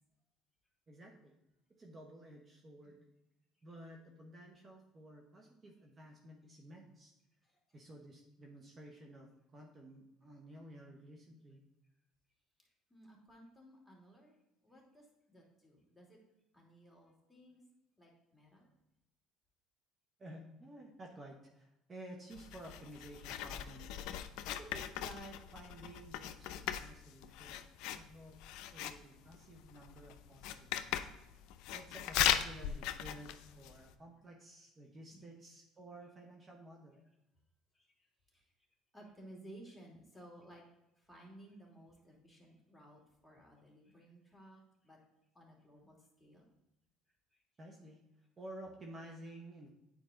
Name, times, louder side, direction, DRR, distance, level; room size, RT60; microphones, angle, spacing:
voice 1, 0.9-1.3 1.8-3.0 3.6-7.1 7.7-11.6 20.2-24.1 24.5-27.6 27.9-28.4 28.7-31.1 31.7-37.0 47.6-49.7, right 1 dB, 30° right, 1 dB, 1.2 m, -53 dB
voice 2, 12.6-14.4 14.6-16.2 16.5-17.6 18.0-18.7 26.6-26.8 35.1-35.3 37.7-38.5 38.9-40.6 41.0-45.0 45.3-46.5 47.3-47.4, right 1 dB, 10° left, -2 dB, 2.7 m, -58 dB
Writing, 22.3-33.9, left 11 dB, 70° left, 0.5 m, -39 dB
9.1 x 4.7 x 3.9 m, 0.92 s
supercardioid pair, 85°, 0 cm